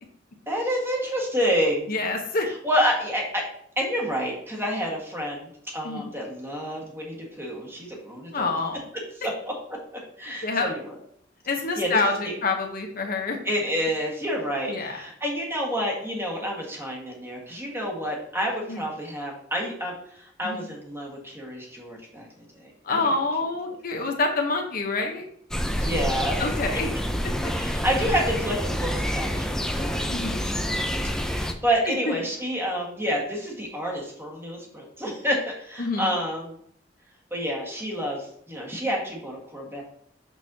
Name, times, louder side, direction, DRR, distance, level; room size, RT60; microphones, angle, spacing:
voice 1, 0.5-1.9 2.5-3.5 3.8-8.5 8.9-9.8 10.2-10.9 11.8-12.3 13.4-22.3 22.5-23.2 23.9-24.1 25.7-26.4 27.5-30.1 30.4-30.5 31.0-36.6 37.3-39.8, equal, 15° right, -1 dB, 1.5 m, -29 dB
voice 2, 1.9-2.5 5.8-6.1 8.3-8.8 10.4-10.7 11.5-13.4 14.7-15.0 18.7-18.8 20.4-20.6 22.8-25.2 26.4-26.9 30.1-30.5 31.9-32.1 35.8-36.1, left 3 dB, 50° left, 2 dB, 0.8 m, -27 dB
sound 1, 25.5-31.5, equal, 5° left, 0.4 m, -27 dB
6.3 x 6.1 x 2.7 m, 0.66 s
head